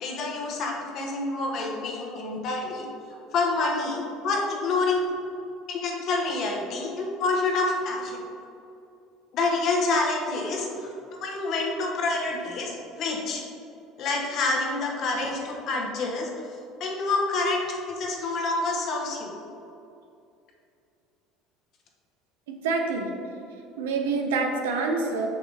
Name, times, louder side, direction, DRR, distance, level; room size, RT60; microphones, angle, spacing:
voice 1, 0.0-2.9 3.3-5.0 5.7-8.2 9.3-10.9 11.2-13.4 14.0-16.3 16.8-19.3, left 3 dB, 55° left, 0 dB, 1.2 m, -27 dB
voice 2, 22.5-23.1 23.8-25.3, right 4 dB, 85° right, 2 dB, 0.7 m, -27 dB
5.8 x 5.3 x 3.4 m, 2.6 s
hypercardioid pair, 80°, 0 cm